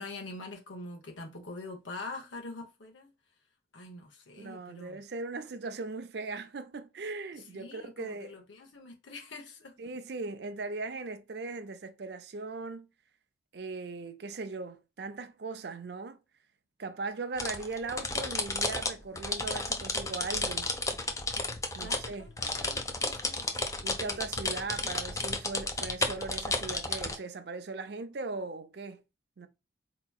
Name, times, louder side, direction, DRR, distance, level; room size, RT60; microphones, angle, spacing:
voice 1, 0.0-3.1 3.7-5.0 7.5-9.7 21.8-24.3, left 2 dB, 80° left, 0.9 m, -45 dB
voice 2, 4.4-8.4 9.8-12.9 13.5-16.2 16.8-20.7 21.7-22.3 23.8-29.0 29.4-29.5, right 3 dB, 60° right, 0.5 m, -39 dB
sound 1, 17.4-27.1, left 3 dB, 15° left, 0.5 m, -32 dB
4.5 x 2.9 x 2.3 m
head